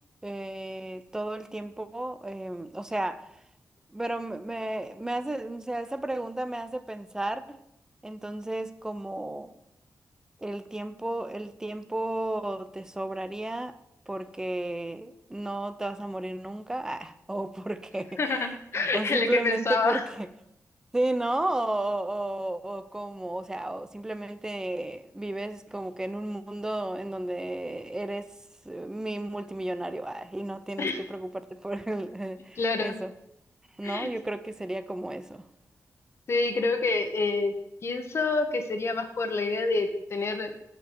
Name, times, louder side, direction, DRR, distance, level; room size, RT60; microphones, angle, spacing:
voice 1, 0.2-3.3 3.9-7.6 8.0-9.5 10.4-13.8 14.1-20.3 20.9-28.3 28.6-33.1 33.8-35.5, right 1 dB, 10° right, 0.6 m, -33 dB
voice 2, 18.2-20.0 30.8-31.0 32.6-32.9 33.8-34.1 36.3-37.5 37.8-40.5, left 3 dB, 45° left, 1.2 m, -27 dB
15.5 x 5.3 x 4.6 m
wide cardioid pair, 150°, 6 cm